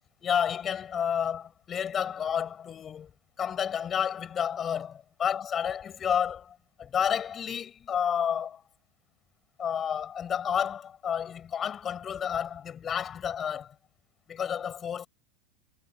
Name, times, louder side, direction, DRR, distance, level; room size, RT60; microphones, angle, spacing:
voice 1, 0.2-8.6 9.6-13.7 14.3-15.1, left 8 dB, 25° left, 7.5 m, -30 dB
supercardioid pair, 135°, 0 cm